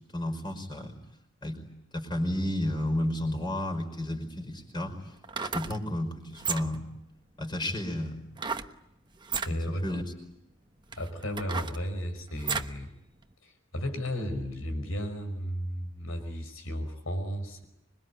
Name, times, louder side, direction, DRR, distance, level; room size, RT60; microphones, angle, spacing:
voice 1, 0.1-1.0 1.4-1.6 1.9-5.0 5.4-6.9 7.4-8.2 9.5-10.0, left 1 dB, 20° left, 6 dB, 5.2 m, -32 dB
sound 1, 5.2-5.8 6.3-6.9 8.4-8.7 9.2-9.5 10.3-10.4 10.9-12.8 13.2-13.3, right 5 dB, 20° right, 1.1 m, -34 dB
voice 2, 9.4-9.9 11.0-12.9 13.4-17.6, equal, 85° left, 8 dB, 5.5 m, -34 dB
26.0 x 22.5 x 9.7 m, 0.83 s
head